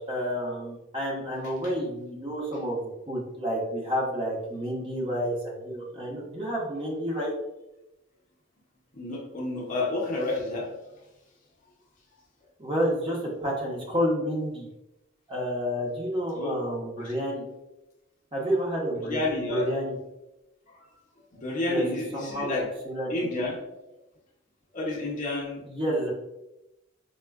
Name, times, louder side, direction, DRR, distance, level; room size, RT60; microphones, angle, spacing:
voice 1, 0.1-7.3 12.6-14.7 15.3-17.4 18.3-19.9 21.7-21.8 22.1-22.5 22.8-23.1 25.6-26.1, equal, 25° right, -4 dB, 0.7 m, -30 dB
voice 2, 8.9-10.9 16.3-16.6 17.0-17.1 19.0-19.7 20.7-20.9 21.3-22.7 23.1-23.6 24.7-25.6, left 2 dB, 40° left, -2 dB, 0.6 m, -30 dB
4.2 x 2.1 x 2.3 m, 0.93 s
head